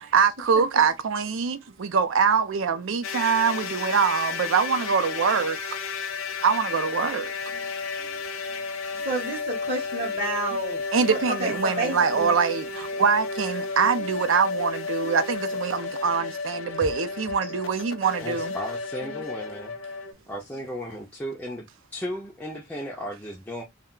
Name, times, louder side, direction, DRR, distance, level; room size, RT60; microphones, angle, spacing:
voice 1, 0.1-5.6 6.4-7.3 10.9-18.5, right 6 dB, 75° right, 0.5 m, -24 dB
sound 1, 3.0-20.1, left 4 dB, 80° left, 0.5 m, -32 dB
voice 2, 9.0-12.4, right 2 dB, 30° right, 0.8 m, -30 dB
voice 3, 18.2-19.7 20.3-23.6, equal, 10° left, 0.4 m, -35 dB
2.2 x 2.2 x 3.6 m
head